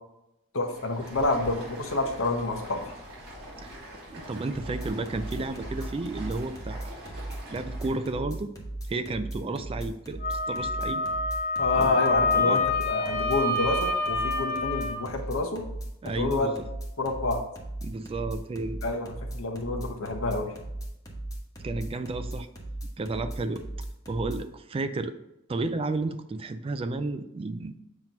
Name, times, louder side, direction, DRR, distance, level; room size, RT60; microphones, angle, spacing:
voice 1, 0.5-2.8 11.6-15.6 16.2-16.5 17.0-17.4 18.8-20.5, left 3 dB, 65° left, 3 dB, 1.0 m, -28 dB
Stream, 0.6-8.2, equal, 50° right, 2.4 m, -44 dB
voice 2, 4.1-6.9 7.5-8.5 8.9-11.0 11.7-12.6 16.0-16.6 17.8-18.8 21.6-22.5 23.0-23.6 24.1-25.1 25.5-27.8, right 2 dB, 25° right, 10 dB, 0.3 m, -32 dB
sound 1, 4.6-24.4, right 1 dB, 15° left, 1.1 m, -37 dB
Wind instrument woodwind instrument, 10.2-15.0, left 3 dB, 45° left, 0.7 m, -27 dB
7.5 x 3.0 x 5.2 m, 0.87 s
head